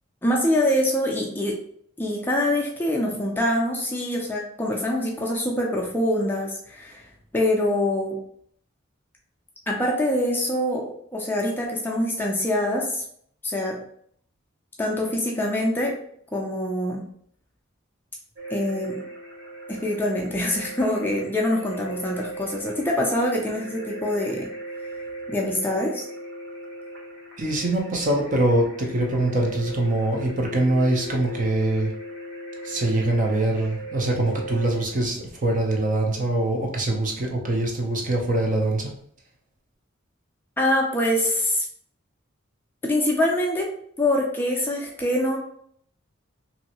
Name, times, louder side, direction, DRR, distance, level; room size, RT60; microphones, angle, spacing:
voice 1, 0.2-1.6 2.0-8.2 9.7-13.0 13.4-13.8 14.8-15.9 16.3-17.0 18.5-19.0 19.8-24.5 25.3-26.0 40.6-41.7 42.8-43.7 44.0-45.4, left 1 dB, 10° left, -2 dB, 0.4 m, -24 dB
sound 1, 18.4-34.8, right 1 dB, 65° right, 1.0 m, -38 dB
voice 2, 27.4-31.9 32.6-38.9, right 1 dB, 40° right, 0 dB, 0.6 m, -23 dB
3.0 x 2.6 x 2.8 m, 0.65 s
head